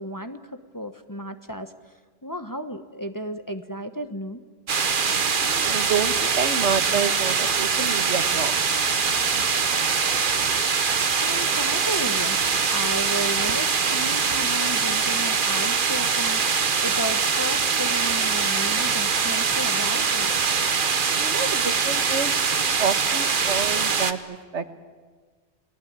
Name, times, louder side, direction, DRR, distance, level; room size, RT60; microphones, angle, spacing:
voice 1, 0.0-1.7 2.2-4.4 11.2-12.4 12.7-20.3, equal, 20° left, 7 dB, 1.1 m, -33 dB
sound 1, 4.7-24.1, right 5 dB, 50° right, 1.2 m, -23 dB
voice 2, 5.4-8.5 21.2-22.4 22.8-24.6, right 6 dB, 80° right, 10 dB, 1.7 m, -28 dB
29.5 x 19.5 x 9.6 m, 1.5 s
omnidirectional pair, 1.2 m